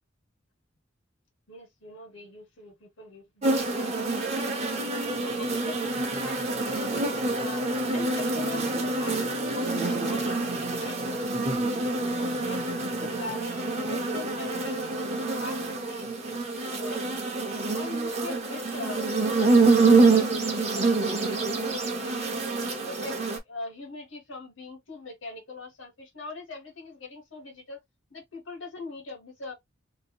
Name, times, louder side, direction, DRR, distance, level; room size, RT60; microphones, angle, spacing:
voice 1, 1.5-4.3 4.7-7.0 7.4-12.7 13.0-15.1 15.3-15.6 15.9-17.0 17.5-22.5 22.8-23.2 23.4-27.8 28.1-29.5, left 3 dB, 90° left, 1.2 m, -42 dB
sound 1, 3.4-23.4, right 3 dB, 35° right, 0.6 m, -26 dB
2.7 x 2.2 x 2.9 m
head